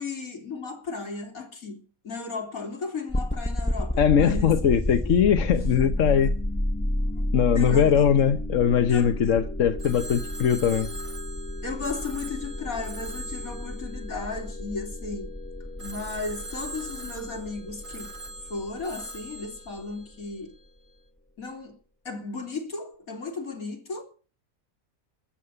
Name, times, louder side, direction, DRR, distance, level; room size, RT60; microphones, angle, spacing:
voice 1, 0.0-4.5 7.5-7.9 8.9-9.3 11.6-15.3 15.8-18.1 18.5-20.5 21.4-21.8 22.1-24.0, left 3 dB, 85° left, 3.7 m, -35 dB
sound 1, 3.1-20.0, left 1 dB, 10° left, 1.0 m, -31 dB
voice 2, 4.0-6.3 7.3-10.9, left 8 dB, 65° left, 1.2 m, -21 dB
Telephone, 9.8-15.0 15.8-20.7, right 2 dB, 25° right, 1.2 m, -43 dB
13.5 x 8.4 x 9.7 m
omnidirectional pair, 1.4 m